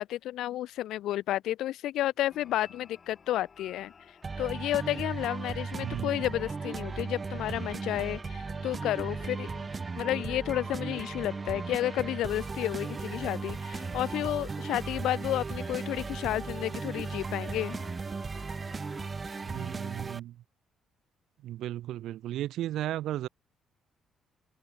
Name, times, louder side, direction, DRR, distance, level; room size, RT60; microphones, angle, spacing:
voice 1, 0.0-3.9 4.4-9.5 10.0-17.8, left 14 dB, 85° left, 2.1 m, -31 dB
sound 1, 2.3-19.9, left 6 dB, 45° left, 5.5 m, -52 dB
sound 2, 4.2-20.2, right 4 dB, 30° right, 0.8 m, -36 dB
voice 2, 5.8-6.2 19.4-20.4 21.4-23.3, right 13 dB, 80° right, 1.2 m, -35 dB
cardioid pair, 90°, 0 cm